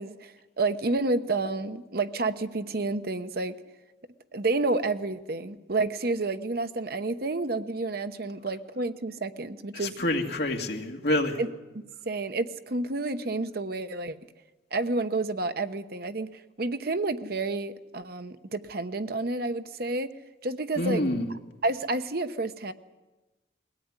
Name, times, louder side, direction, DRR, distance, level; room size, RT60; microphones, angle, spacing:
voice 1, 0.0-3.5 4.3-10.0 11.4-11.5 11.7-14.2 14.7-20.1 20.4-21.0 21.6-22.7, right 2 dB, 55° right, 10 dB, 1.0 m, -30 dB
voice 2, 9.7-11.4 20.8-21.3, left 1 dB, 60° left, 3 dB, 2.3 m, -27 dB
21.5 x 17.0 x 9.7 m, 1.1 s
head